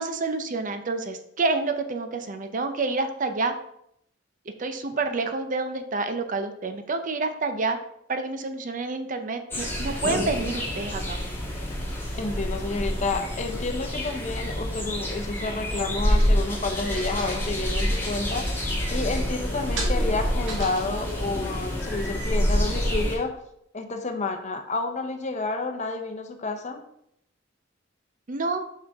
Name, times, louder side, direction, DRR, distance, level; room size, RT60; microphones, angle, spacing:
voice 1, 0.0-3.5 4.6-7.8 8.1-11.2 28.3-28.6, right 3 dB, 45° right, 7 dB, 0.6 m, -28 dB
sound 1, 9.5-23.2, equal, 10° left, 1.5 m, -27 dB
voice 2, 12.2-23.4 23.7-26.8, left 3 dB, 40° left, 6 dB, 0.7 m, -30 dB
sound 2, 16.1-21.4, right 3 dB, 90° right, 1.7 m, -41 dB
6.1 x 5.7 x 3.5 m, 0.74 s
head